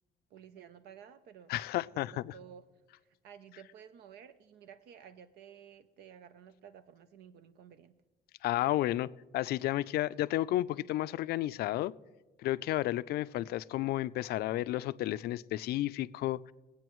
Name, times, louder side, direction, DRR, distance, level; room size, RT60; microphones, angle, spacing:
voice 1, 0.3-1.5 2.1-2.7 3.0-7.9, right 8 dB, 75° right, 0.6 m, -53 dB
voice 2, 1.5-2.3 8.4-11.9 12.4-16.4, left 15 dB, 70° left, 0.4 m, -32 dB
22.0 x 8.5 x 3.1 m
cardioid pair, 110°, 17 cm